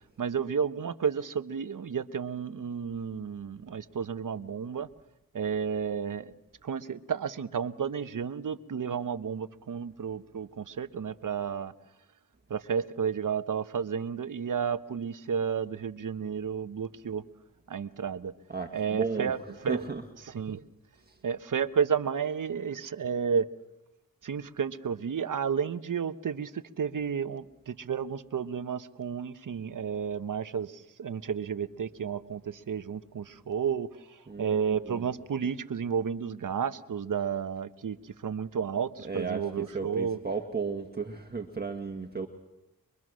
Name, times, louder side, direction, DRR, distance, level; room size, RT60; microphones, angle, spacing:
voice 1, 0.2-4.9 5.3-6.3 6.6-11.7 12.5-17.2 17.7-18.3 18.7-19.4 19.6-19.8 20.3-20.6 21.2-23.5 24.2-30.7 31.0-33.9 34.4-38.0 38.2-40.2, right 7 dB, 60° right, 12 dB, 1.1 m, -32 dB
voice 2, 18.5-19.3 19.7-20.0 21.1-21.2 34.3-35.1 39.0-42.3, right 4 dB, 25° right, 3 dB, 1.6 m, -34 dB
24.5 x 22.5 x 6.3 m, 0.97 s
cardioid pair, 65°, 36 cm